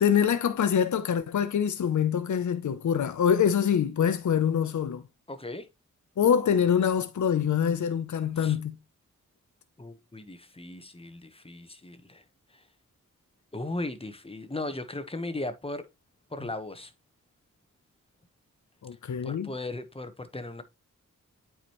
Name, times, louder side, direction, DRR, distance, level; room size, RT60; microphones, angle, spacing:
voice 1, 0.0-5.0 6.2-8.7 18.8-19.5, left 8 dB, 65° left, 0.7 m, -25 dB
voice 2, 5.3-5.7 8.4-8.6 9.8-12.2 12.5-12.6 13.5-15.9 16.3-16.9 19.2-20.6, left 2 dB, 15° left, 1.1 m, -37 dB
8.7 x 4.9 x 3.0 m
wide cardioid pair, 95°, 32 cm